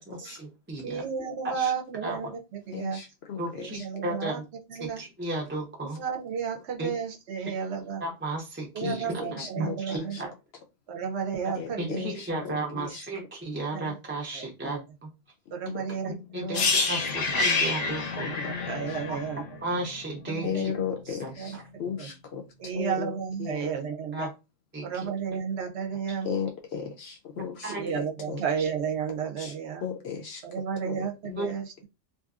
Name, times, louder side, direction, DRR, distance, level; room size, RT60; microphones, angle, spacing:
voice 1, 0.0-1.1 1.4-1.7 2.0-2.4 3.4-4.4 4.8-6.0 6.8-7.0 7.4-7.5 8.0-10.3 11.4-15.1 16.0-18.3 19.1-19.2 19.6-20.7 21.0-21.6 24.1-24.3 24.7-25.1 26.1-26.2 27.4-27.9 28.6-28.7 31.4-31.5, right 2 dB, 15° right, -1 dB, 0.4 m, -35 dB
voice 2, 0.8-3.0 3.5-4.4 4.7-5.0 5.9-8.0 8.7-10.2 10.9-12.0 13.7-13.9 14.3-14.8 15.5-16.1 16.4-16.7 18.2-19.4 20.3-20.8 21.4-22.1 22.6-24.3 24.8-26.3 27.8-29.8 30.4-31.9, right 6 dB, 65° right, 4 dB, 0.8 m, -32 dB
voice 3, 2.7-3.4 8.8-10.0 11.6-11.7 12.0-12.1 12.5-12.9 16.3-16.7 18.2-18.5 18.9-19.0 20.4-21.5 21.8-22.4 22.8-23.6 26.2-28.4 29.4-29.5 29.8-30.4 30.8-31.5, left 7 dB, 65° left, 3 dB, 0.7 m, -35 dB
sound 1, 16.5-20.4 20.7-20.9, left 4 dB, 85° left, 1.1 m, -28 dB
2.8 x 2.6 x 2.3 m, 0.26 s
omnidirectional pair, 1.3 m